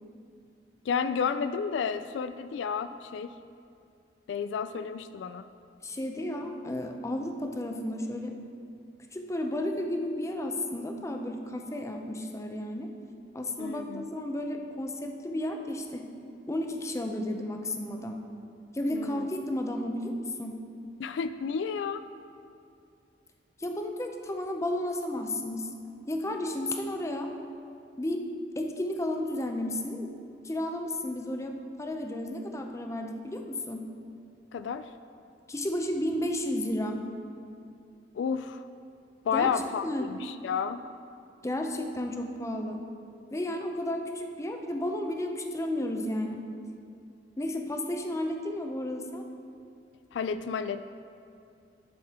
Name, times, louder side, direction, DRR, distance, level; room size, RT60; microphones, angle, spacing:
voice 1, 0.8-3.3 4.3-5.5 13.6-14.1 18.9-19.3 21.0-22.0 34.5-34.9 38.1-38.7 39.2-40.8 50.1-50.9, left 6 dB, 80° left, 12 dB, 0.3 m, -31 dB
voice 2, 5.8-8.4 9.1-12.9 13.3-16.1 16.5-18.2 18.7-20.6 23.6-25.7 26.1-27.3 28.0-28.3 28.6-30.1 30.4-33.9 35.5-37.0 39.3-39.5 39.8-40.1 41.4-42.8 43.3-46.5 47.4-49.3, left 1 dB, 15° left, 4 dB, 0.6 m, -32 dB
11.0 x 6.6 x 4.3 m, 2.4 s
head